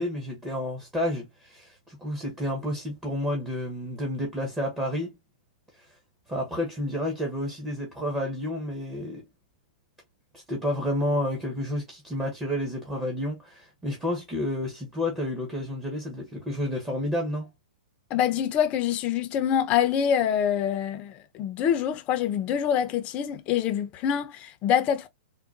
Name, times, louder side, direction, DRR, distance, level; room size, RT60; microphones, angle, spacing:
voice 1, 0.0-5.2 5.8-5.9 6.3-9.2 10.3-17.5, left 1 dB, 10° right, 0.9 m, -30 dB
voice 2, 18.1-25.1, left 9 dB, 30° left, 0.6 m, -25 dB
3.7 x 2.2 x 2.4 m
hypercardioid pair, 140°, 4 cm